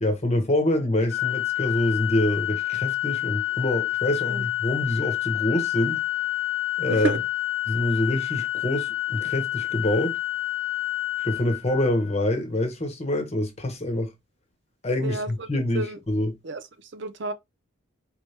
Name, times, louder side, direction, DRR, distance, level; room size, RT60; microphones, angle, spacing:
voice 1, 0.0-6.0 6.8-7.1 7.7-10.2 11.2-14.1 14.8-16.3, left 1 dB, 30° left, 1.1 m, -26 dB
Organ, 1.1-12.1, left 17 dB, 85° left, 1.2 m, -28 dB
voice 2, 6.9-7.2 15.0-15.5 15.7-16.0 16.4-17.3, right 2 dB, 55° right, 0.5 m, -31 dB
4.5 x 3.3 x 2.9 m
head